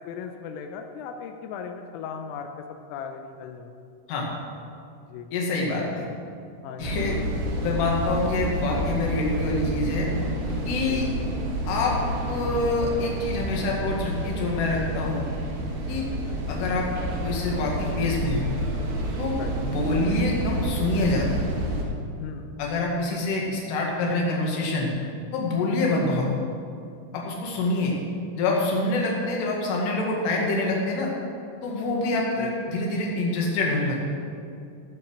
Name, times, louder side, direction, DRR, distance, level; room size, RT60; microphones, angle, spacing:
voice 1, 0.0-2.5 2.9-3.8 5.0-5.3 5.8-5.9 6.6-7.0 10.8-11.0 16.3-16.4 19.4-19.5 22.2-22.5 32.4-32.6, left 6 dB, 90° left, 5 dB, 3.3 m, -37 dB
voice 2, 5.3-6.1 6.8-7.2 7.6-10.1 10.7-11.0 11.7-12.0 12.3-15.3 15.9-16.1 16.5-16.9 17.2-18.5 19.2-21.3 22.6-24.9 25.3-26.3 27.1-27.9 28.4-31.1 31.6-34.0, left 2 dB, 60° left, -2 dB, 3.7 m, -26 dB
sound 1, 6.8-21.8, equal, 55° right, 3.2 m, -29 dB
16.0 x 7.0 x 6.4 m, 2.4 s
omnidirectional pair, 5.9 m